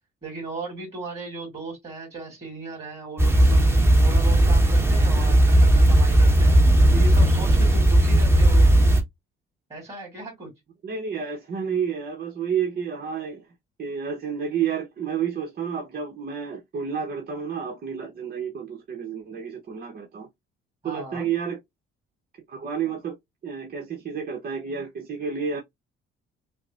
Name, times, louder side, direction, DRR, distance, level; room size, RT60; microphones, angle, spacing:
voice 1, 0.2-6.6 6.9-8.7 9.7-10.5 20.8-21.3, right 3 dB, 30° right, 2.3 m, -37 dB
sound 1, 3.2-9.0, right 1 dB, 10° right, 1.2 m, -17 dB
voice 2, 10.8-13.4 13.8-20.3 20.8-21.6 22.5-23.2 23.4-25.6, right 7 dB, 45° right, 0.9 m, -30 dB
5.7 x 2.1 x 2.4 m
cardioid pair, 95°, 21 cm